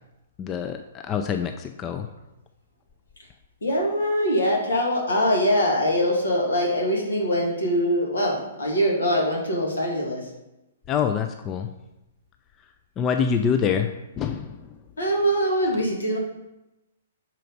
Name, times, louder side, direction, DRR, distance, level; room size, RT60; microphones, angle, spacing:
voice 1, 0.4-2.1 10.9-11.7 13.0-13.9 14.2-14.7, left 7 dB, 25° left, 7 dB, 0.4 m, -25 dB
voice 2, 3.6-10.3 15.0-16.2, equal, 80° left, -1 dB, 2.2 m, -23 dB
6.0 x 4.5 x 5.3 m, 0.95 s
hypercardioid pair, 125°, 0 cm